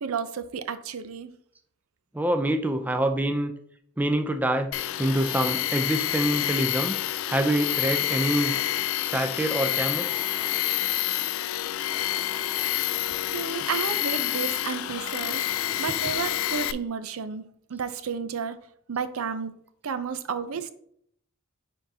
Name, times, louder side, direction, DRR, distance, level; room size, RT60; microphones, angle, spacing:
voice 1, 0.0-1.3 13.3-15.5 15.8-17.4 17.7-18.6 18.9-19.5 19.8-20.7, right 6 dB, 85° right, 11 dB, 0.5 m, -32 dB
voice 2, 2.1-3.5 4.0-4.7 5.0-6.9 7.3-8.5 9.1-10.2, right 1 dB, 10° right, 6 dB, 0.4 m, -26 dB
Tools, 4.7-16.7, left 13 dB, 70° left, 0.3 m, -28 dB
10.0 x 3.7 x 2.7 m, 0.67 s
head